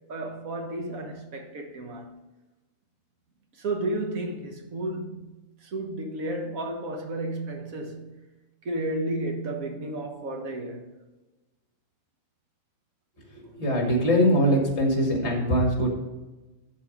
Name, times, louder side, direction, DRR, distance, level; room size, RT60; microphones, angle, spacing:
voice 1, 0.1-2.2 3.5-5.3 5.6-8.2 8.6-10.9, right 1 dB, 85° right, 1.7 m, -32 dB
voice 2, 13.6-15.9, equal, 55° left, 2.4 m, -22 dB
11.5 x 4.2 x 5.1 m
omnidirectional pair, 1.4 m